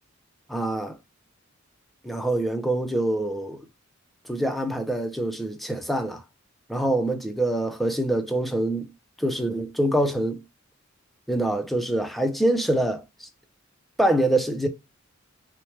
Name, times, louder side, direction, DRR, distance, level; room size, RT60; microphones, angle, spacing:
voice 1, 0.5-0.9 2.0-3.6 4.3-6.2 6.7-8.9 9.2-10.4 11.3-13.3 14.0-14.7, right 1 dB, ahead, 0.4 m, -25 dB
4.3 x 2.1 x 3.1 m
head